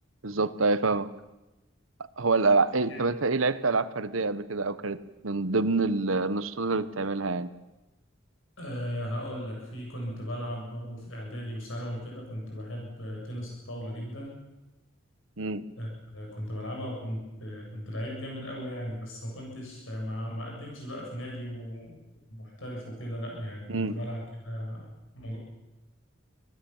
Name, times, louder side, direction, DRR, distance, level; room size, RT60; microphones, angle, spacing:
voice 1, 0.2-1.1 2.2-7.5 15.4-15.6 23.7-24.0, right 3 dB, 80° right, 14 dB, 1.2 m, -26 dB
voice 2, 8.6-14.4 15.8-22.0 22.4-25.4, equal, 75° left, -1 dB, 7.8 m, -37 dB
24.5 x 18.5 x 7.4 m, 1.0 s
head